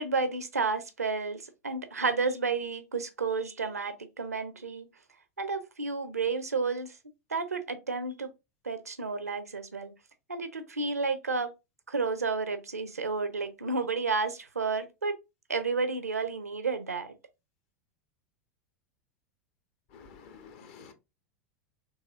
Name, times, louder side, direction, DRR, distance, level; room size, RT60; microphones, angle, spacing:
voice 1, 0.0-4.9 5.4-7.0 7.3-8.3 8.6-9.9 10.3-11.5 11.9-15.1 15.5-17.1, right 4 dB, 85° right, 0.6 m, -31 dB
voice 2, 19.9-20.9, left 6 dB, 55° left, 0.9 m, -50 dB
4.1 x 2.9 x 2.4 m
figure-of-eight pair, 90°, 8 cm